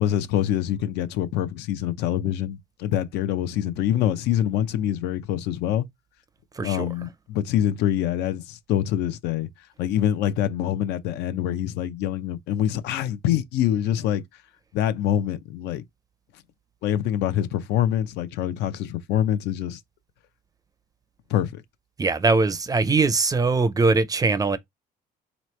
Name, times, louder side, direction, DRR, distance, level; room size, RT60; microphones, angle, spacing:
voice 1, 0.0-5.9 6.6-9.5 9.8-14.2 14.7-15.8 16.8-19.8 21.3-21.6, left 11 dB, 85° left, 0.6 m, -25 dB
voice 2, 22.0-24.6, right 3 dB, 20° right, 0.5 m, -21 dB
4.0 x 3.1 x 3.1 m
cardioid pair, 110°, 17 cm